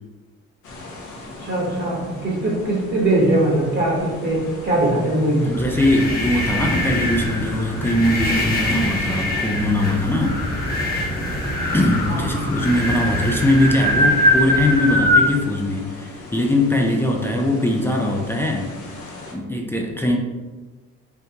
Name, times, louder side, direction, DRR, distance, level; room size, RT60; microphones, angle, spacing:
sound 1, 0.6-19.3, left 2 dB, 75° left, 0.8 m, -39 dB
voice 1, 1.4-5.5 12.1-12.5, right 1 dB, 35° right, -4 dB, 0.9 m, -21 dB
voice 2, 5.4-10.4 11.7-18.7 19.3-20.2, left 1 dB, 10° left, 0 dB, 0.4 m, -21 dB
sound 2, 5.5-15.3, left 1 dB, 30° left, 1.0 m, -22 dB
3.6 x 2.7 x 2.8 m, 1.2 s
cardioid pair, 90°, 30 cm